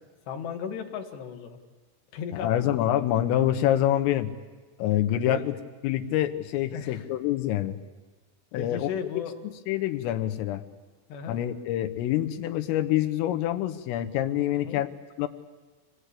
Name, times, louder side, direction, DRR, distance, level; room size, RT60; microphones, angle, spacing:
voice 1, 0.3-1.6 2.1-2.7 5.3-5.5 6.7-7.1 8.5-9.4 11.1-11.4 14.5-14.8, left 7 dB, 65° left, 4 dB, 3.4 m, -36 dB
voice 2, 2.4-4.3 4.8-5.6 5.8-7.8 8.5-8.9 9.7-10.6 11.3-14.9 15.2-15.3, left 12 dB, 85° left, 7 dB, 3.7 m, -26 dB
27.5 x 19.5 x 8.4 m, 1.4 s
omnidirectional pair, 5.7 m